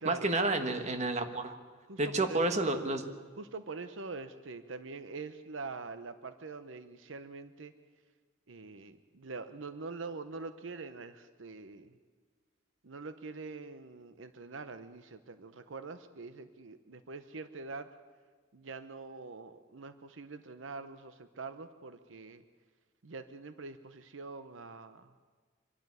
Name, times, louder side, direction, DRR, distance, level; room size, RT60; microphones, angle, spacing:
voice 1, 0.0-1.5 2.0-3.0, right 2 dB, 35° right, 7 dB, 1.4 m, -30 dB
voice 2, 1.9-2.7 3.4-7.7 8.5-11.9 12.8-17.9 18.5-22.4 23.0-25.1, right 4 dB, 80° right, 11 dB, 0.8 m, -44 dB
24.5 x 12.0 x 9.7 m, 1.5 s
head